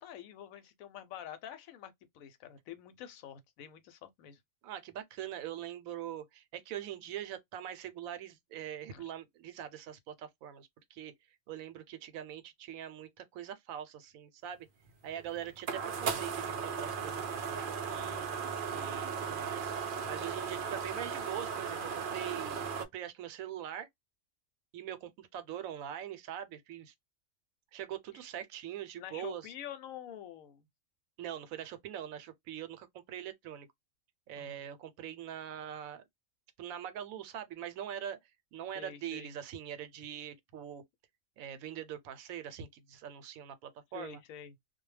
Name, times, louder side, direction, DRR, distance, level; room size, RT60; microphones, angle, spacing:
voice 1, 0.0-4.4 8.9-9.1 29.0-30.6 34.4-34.6 38.7-39.3 43.9-44.5, left 10 dB, 80° left, 1.0 m, -47 dB
voice 2, 4.6-11.1 11.5-14.7 15.0-18.3 18.7-19.7 20.0-23.9 24.7-26.9 27.7-29.5 31.2-33.7 34.3-36.1 36.6-38.2 38.5-40.8 41.4-44.2, right 10 dB, 85° right, 1.0 m, -43 dB
sound 1, 14.9-22.9, right 6 dB, 65° right, 0.5 m, -36 dB
2.3 x 2.1 x 3.1 m
omnidirectional pair, 1.4 m